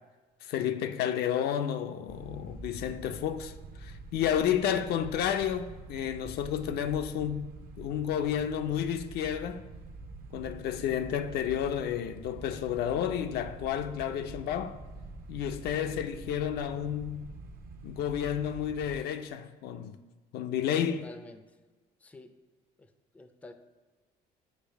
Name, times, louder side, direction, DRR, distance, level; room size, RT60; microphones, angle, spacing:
voice 1, 0.4-7.5 7.8-9.7 10.3-14.8 15.3-17.3 17.8-20.0 20.3-21.1, left 9 dB, 70° left, 0.4 m, -31 dB
sound 1, 2.1-19.0, right 3 dB, 60° right, 0.7 m, -46 dB
voice 2, 20.9-21.6 22.0-22.3 22.8-23.5, left 2 dB, 10° left, 0.4 m, -50 dB
5.3 x 4.7 x 4.4 m
cardioid pair, 110°, 17 cm